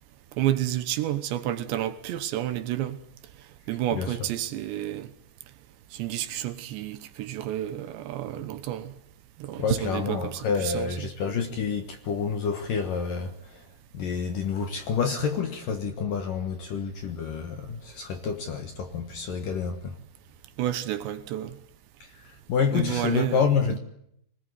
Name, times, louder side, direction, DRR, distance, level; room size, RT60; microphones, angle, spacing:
voice 1, 0.4-3.0 3.7-5.1 5.9-8.9 9.4-11.1 20.6-21.6 22.7-23.4, right 13 dB, 75° right, 3.1 m, -30 dB
voice 2, 9.6-13.6 13.9-19.9 22.3-23.8, left 6 dB, 65° left, 2.4 m, -28 dB
24.0 x 20.5 x 9.6 m
omnidirectional pair, 5.5 m